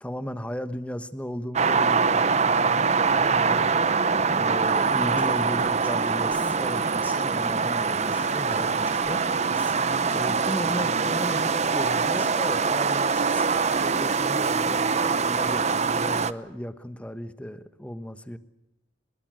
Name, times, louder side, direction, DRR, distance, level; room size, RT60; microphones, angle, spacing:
voice 1, 0.0-3.8 4.3-9.3 10.1-13.1 13.7-18.4, equal, 5° left, 11 dB, 1.1 m, -35 dB
sound 1, 1.5-16.3, right 5 dB, 35° right, 0.8 m, -24 dB
Whispering, 5.1-7.7 8.0-12.5 12.8-12.9 13.1-15.3, right 1 dB, 10° right, 4.0 m, -46 dB
24.5 x 21.5 x 7.6 m, 0.99 s
head